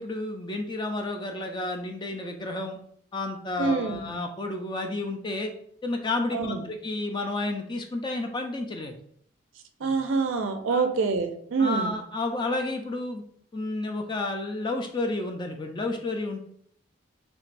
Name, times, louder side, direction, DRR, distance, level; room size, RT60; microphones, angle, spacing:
voice 1, 0.0-2.8 3.1-5.5 5.8-8.9 9.8-10.0 10.7-10.9 11.6-13.2 13.5-16.4, left 2 dB, 20° left, 4 dB, 0.3 m, -31 dB
voice 2, 3.6-4.0 6.3-6.6 9.8-11.9, right 4 dB, 70° right, 7 dB, 0.4 m, -26 dB
3.2 x 3.1 x 2.5 m, 0.65 s
head